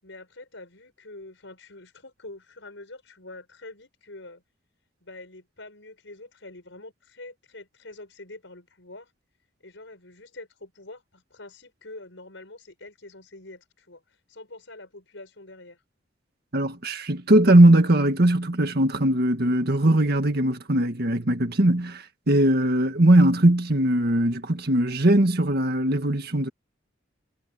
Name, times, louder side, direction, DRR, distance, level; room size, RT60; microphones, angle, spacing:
voice 1, 0.0-4.4 5.0-9.1 9.6-15.8, left 2 dB, 70° left, 7.2 m, -45 dB
voice 2, 16.5-26.5, right 1 dB, 55° right, 1.8 m, -20 dB
head